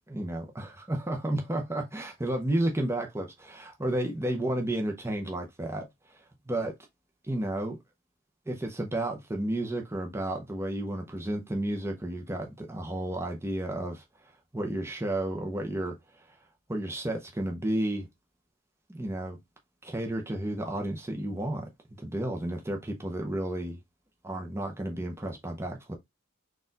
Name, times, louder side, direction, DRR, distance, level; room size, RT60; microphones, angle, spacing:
voice 1, 0.1-6.7 7.2-7.8 8.5-14.0 14.5-16.3 16.7-18.1 18.9-19.4 19.8-21.7 22.0-23.8 24.2-25.9, right 1 dB, 10° right, 0.6 m, -32 dB
4.3 x 2.4 x 3.8 m
head